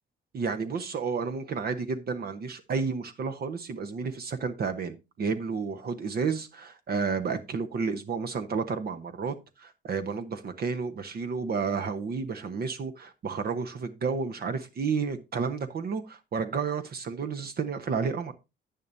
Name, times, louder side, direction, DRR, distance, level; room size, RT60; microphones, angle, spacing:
voice 1, 0.3-18.3, right 5 dB, 50° right, 1.0 m, -31 dB
10.5 x 8.9 x 2.7 m
cardioid pair, 90°, 20 cm